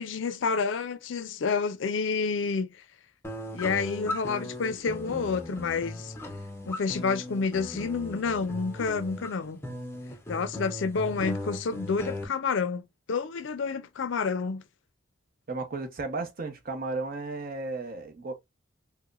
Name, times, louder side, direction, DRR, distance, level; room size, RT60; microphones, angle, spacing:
voice 1, 0.0-2.7 3.5-6.1 6.7-9.6 10.3-12.8 13.1-14.6, left 5 dB, 70° left, 0.4 m, -29 dB
sound 1, 3.2-12.2, left 1 dB, 15° left, 0.5 m, -38 dB
voice 2, 15.5-18.3, right 3 dB, 50° right, 0.8 m, -34 dB
4.7 x 2.1 x 2.3 m
head